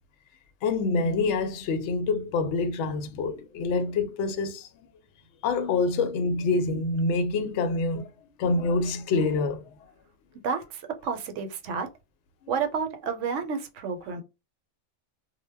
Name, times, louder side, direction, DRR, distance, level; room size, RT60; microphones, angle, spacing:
voice 1, 0.6-4.7 5.4-8.1 8.4-9.7, left 3 dB, 70° left, 0.8 m, -26 dB
voice 2, 10.4-11.9 12.5-14.2, right 6 dB, 75° right, 0.9 m, -30 dB
2.2 x 2.0 x 3.3 m
omnidirectional pair, 1.3 m